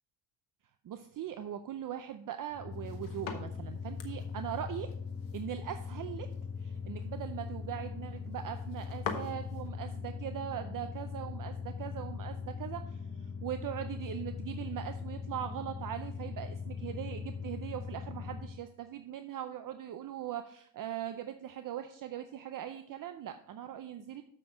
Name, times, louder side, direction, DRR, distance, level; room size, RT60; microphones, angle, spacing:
voice 1, 0.8-4.9 5.3-6.3 6.6-24.2, right 10 dB, 45° right, 8 dB, 0.6 m, -40 dB
sound 1, 2.5-18.6, left 5 dB, 35° left, 1.0 m, -40 dB
sound 2, 2.7-9.7, left 7 dB, 85° left, 1.4 m, -46 dB
7.5 x 6.0 x 5.0 m, 0.65 s
cardioid pair, 110°, 45 cm